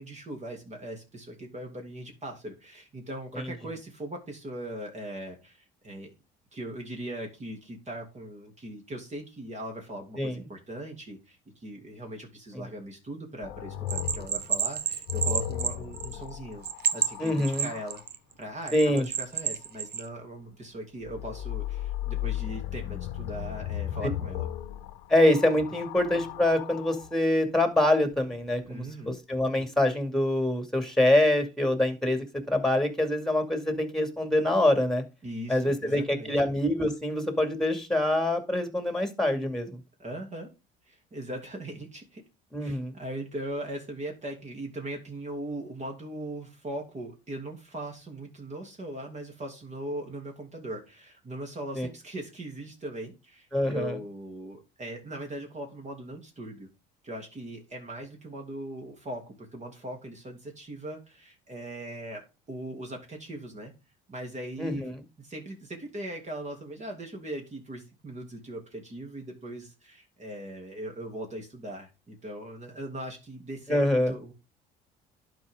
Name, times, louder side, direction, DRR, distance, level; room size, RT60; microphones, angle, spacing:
voice 1, 0.0-6.1 6.5-11.4 11.6-16.6 16.9-18.0 18.4-24.5 28.7-29.2 35.2-36.3 40.0-40.5 40.9-42.2 42.6-56.7 57.0-62.2 62.5-63.7 64.1-64.8 65.2-74.3, right 1 dB, 35° right, 2 dB, 2.8 m, -39 dB
sound 1, 13.4-18.0 21.0-27.1 28.1-28.7, left 11 dB, 80° left, 1.1 m, -36 dB
Bell, 13.9-16.3 16.6-18.2 18.7-20.0, right 8 dB, 50° right, 0.9 m, -29 dB
voice 2, 17.2-17.7 18.7-19.1 25.1-35.0 35.5-39.8 42.5-42.9 51.8-51.9 53.5-54.0 64.6-65.0 73.7-74.1, left 1 dB, ahead, 7 dB, 2.3 m, -25 dB
11.0 x 4.8 x 3.7 m, 0.28 s
supercardioid pair, 80°, 21 cm